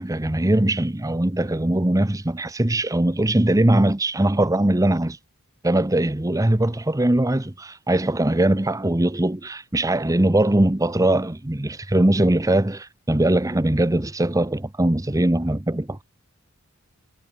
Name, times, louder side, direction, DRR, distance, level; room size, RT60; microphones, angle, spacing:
voice 1, 0.0-5.2 5.6-16.0, right 1 dB, 15° right, 0.8 m, -21 dB
head